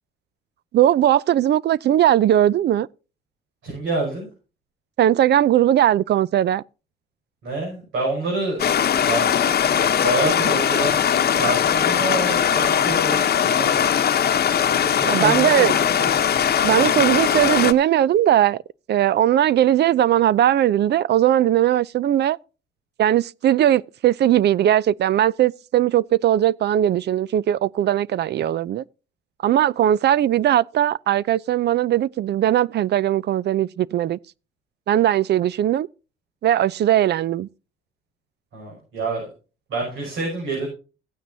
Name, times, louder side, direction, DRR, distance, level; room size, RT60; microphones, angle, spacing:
voice 1, 0.7-2.9 5.0-6.6 15.1-15.8 16.6-18.6 18.9-22.4 23.0-28.8 29.4-34.2 34.9-35.9 36.4-37.5, right 11 dB, 60° right, 0.4 m, -19 dB
voice 2, 3.6-4.3 7.4-8.7 9.0-9.3 10.0-11.0 11.4-13.9 15.0-16.1 38.5-39.3 39.7-40.7, right 2 dB, 80° right, 6.4 m, -27 dB
Stream, 8.6-17.7, left 8 dB, 50° left, 0.9 m, -20 dB
15.0 x 9.3 x 2.7 m
cardioid pair, 90°, 20 cm